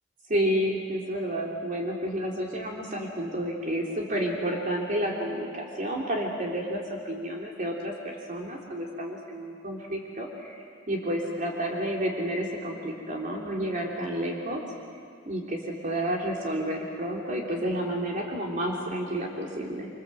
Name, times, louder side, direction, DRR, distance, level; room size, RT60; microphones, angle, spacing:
voice 1, 0.3-14.6 15.2-19.9, equal, 45° right, -2 dB, 3.4 m, -30 dB
27.0 x 26.0 x 7.8 m, 2.2 s
head